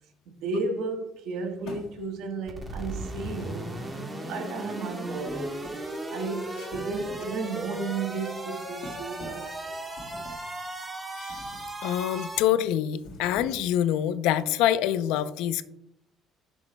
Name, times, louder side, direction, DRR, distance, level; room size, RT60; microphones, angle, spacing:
voice 1, 0.3-3.8 4.3-9.8, right 3 dB, 75° right, 1.3 m, -34 dB
sound 1, 1.6-2.3 3.4-4.3 5.3-5.9 6.6-7.4 7.7-8.0 8.8-9.6 10.0-10.5 11.3-11.7 12.1-12.4 12.9-13.8, left 1 dB, 70° left, 1.6 m, -45 dB
sound 2, 2.5-12.4, right 2 dB, 20° right, 1.3 m, -36 dB
voice 2, 11.8-15.6, left 11 dB, 85° left, 0.4 m, -25 dB
10.5 x 6.3 x 2.2 m
cardioid pair, 130°, 0 cm